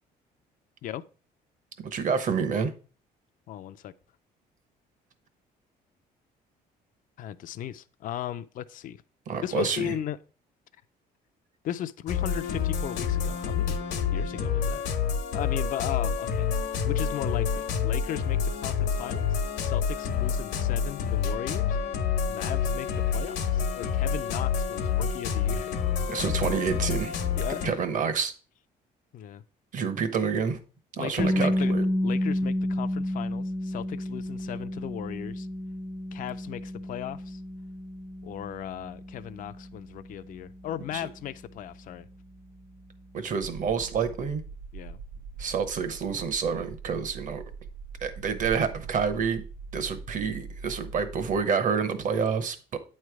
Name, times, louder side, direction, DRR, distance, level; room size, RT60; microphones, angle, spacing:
voice 1, 1.8-2.7 9.3-9.9 26.1-27.2 27.6-28.3 29.7-30.6 30.9-31.9 40.9-41.1 43.1-44.4 45.4-47.4 48.0-49.4 49.7-52.8, right 6 dB, 50° right, 1.0 m, -28 dB
voice 2, 3.5-3.9 7.2-9.0 9.4-10.2 11.6-13.8 14.1-14.8 15.3-16.5 16.9-21.8 22.3-26.3 27.4-27.8 29.1-29.4 31.0-31.7 32.0-35.5 36.1-37.4 38.2-42.1 44.7-45.0, left 11 dB, 55° left, 0.4 m, -37 dB
sound 1, 12.1-27.7, left 7 dB, 80° left, 1.0 m, -28 dB
sound 2, 31.2-43.0, left 1 dB, 20° right, 0.6 m, -31 dB
sound 3, 43.4-51.4, right 4 dB, 80° right, 0.6 m, -42 dB
8.7 x 3.2 x 4.7 m
cardioid pair, 110°, 17 cm